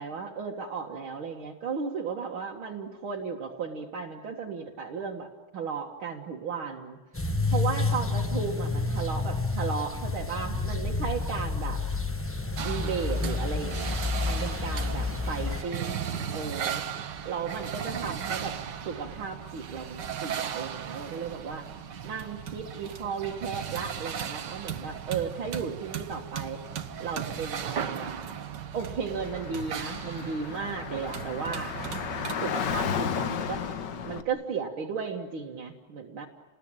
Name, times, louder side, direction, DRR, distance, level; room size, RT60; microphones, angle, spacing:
voice 1, 0.0-5.3 5.5-7.0 7.5-11.8 12.6-16.0 16.3-16.8 17.3-18.5 18.9-21.7 22.0-26.6 27.0-28.1 28.7-31.7 32.4-33.6 34.0-36.3, right 5 dB, 75° right, 0 dB, 2.4 m, -35 dB
sound 1, 7.1-15.6, left 3 dB, 10° left, 0.7 m, -29 dB
sound 2, 12.6-32.3, right 8 dB, 60° right, 1.8 m, -36 dB
Car / Traffic noise roadway noise, 29.2-34.2, left 7 dB, 60° left, 1.7 m, -33 dB
30.0 x 20.0 x 8.9 m, 1.3 s
omnidirectional pair, 2.3 m